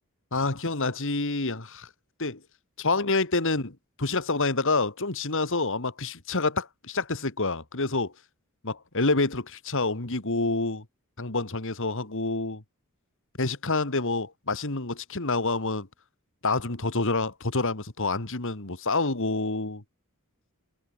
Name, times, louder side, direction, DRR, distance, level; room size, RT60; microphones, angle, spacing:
voice 1, 0.3-1.9 2.2-2.4 2.8-8.1 8.6-10.8 11.2-12.6 13.4-15.9 16.4-19.8, left 3 dB, 60° left, 2.3 m, -27 dB
head